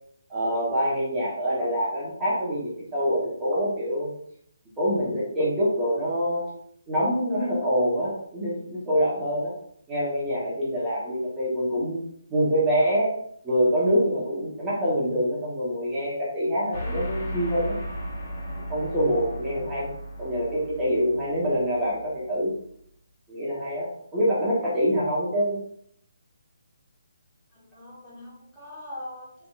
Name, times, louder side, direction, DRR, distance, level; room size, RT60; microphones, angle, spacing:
voice 1, 0.3-4.1 4.8-6.5 6.9-9.5 9.9-12.0 12.3-13.1 13.4-17.8 18.7-19.9 20.2-22.5 23.3-25.6, equal, 15° right, -8 dB, 1.2 m, -25 dB
sound 1, 16.7-22.5, right 1 dB, 40° left, 1.6 m, -36 dB
voice 2, 27.5-29.5, left 1 dB, 10° left, -9 dB, 1.4 m, -42 dB
4.8 x 3.3 x 2.5 m, 0.68 s
figure-of-eight pair, 145°, 0 cm